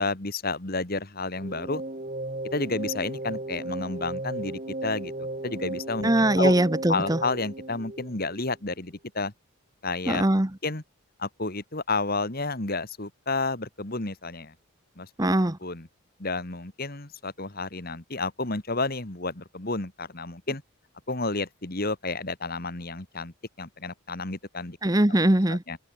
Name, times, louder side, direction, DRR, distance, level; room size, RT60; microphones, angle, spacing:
voice 1, 0.0-1.8 2.5-6.1 6.4-6.5 6.9-9.3 9.8-10.3 10.6-10.8 11.2-14.5 15.0-15.3 15.6-15.9 16.2-20.6 21.1-24.8 25.7-25.8, left 3 dB, 40° left, 2.1 m, -31 dB
sound 1, 1.3-8.6, right 1 dB, 35° right, 1.9 m, -35 dB
voice 2, 6.0-7.2 10.1-10.5 15.2-15.6 24.8-25.6, right 1 dB, 15° right, 0.9 m, -21 dB
open air
head